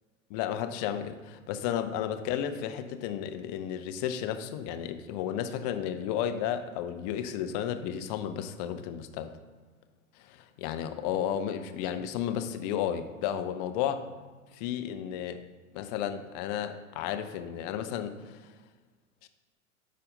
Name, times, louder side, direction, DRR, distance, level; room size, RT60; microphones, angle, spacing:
voice 1, 0.3-9.3 10.2-14.1 14.5-15.4 15.7-18.4 19.2-19.3, left 9 dB, 30° left, 9 dB, 0.5 m, -33 dB
10.0 x 4.1 x 3.8 m, 1.4 s
figure-of-eight pair, 100°, 43 cm